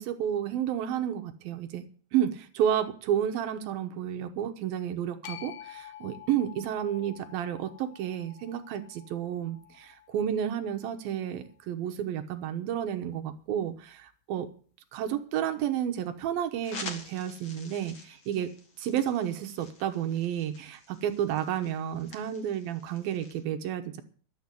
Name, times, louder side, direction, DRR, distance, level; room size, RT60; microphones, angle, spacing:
voice 1, 0.0-1.8 2.1-14.5 14.9-18.5 18.8-24.0, right 10 dB, 75° right, 7 dB, 2.2 m, -31 dB
sound 1, 5.2-11.5, left 12 dB, 70° left, 2.4 m, -49 dB
sound 2, 16.6-23.4, left 3 dB, 55° left, 1.4 m, -47 dB
12.5 x 7.5 x 9.5 m, 0.43 s
omnidirectional pair, 5.5 m